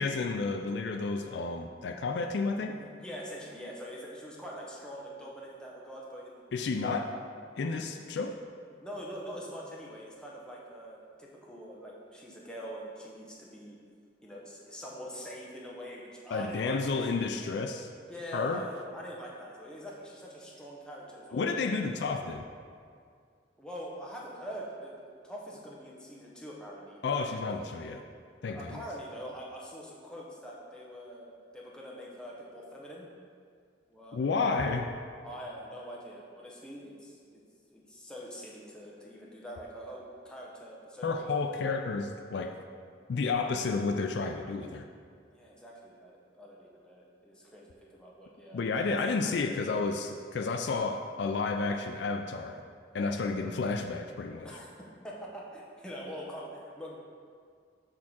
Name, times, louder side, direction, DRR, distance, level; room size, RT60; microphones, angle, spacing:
voice 1, 0.0-2.8 6.5-7.1 7.6-8.4 16.3-17.9 18.3-18.6 21.3-22.4 27.0-28.0 28.4-28.8 34.1-34.9 41.0-42.6 43.1-44.9 48.5-52.6 52.9-54.5, left 4 dB, 65° left, 5 dB, 0.4 m, -31 dB
voice 2, 2.5-7.0 8.8-13.8 14.2-17.0 18.0-21.5 23.6-27.2 28.4-33.0 33.9-34.2 34.6-34.7 35.2-37.4 37.7-41.3 45.3-49.0 54.4-54.7 55.0-56.9, equal, 5° left, -4 dB, 0.9 m, -44 dB
6.3 x 3.6 x 6.0 m, 2.1 s
head